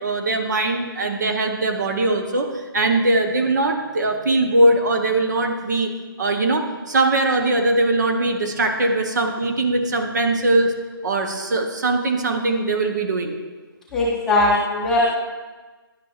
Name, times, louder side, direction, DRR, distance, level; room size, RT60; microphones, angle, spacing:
voice 1, 0.0-5.9 6.2-10.7 11.0-13.4 14.5-14.7 15.0-15.1, right 2 dB, 50° right, 4 dB, 0.8 m, -21 dB
voice 2, 13.9-15.1, left 2 dB, 5° left, -7 dB, 1.0 m, -19 dB
10.5 x 5.7 x 2.4 m, 1.3 s
hypercardioid pair, 160°, 12 cm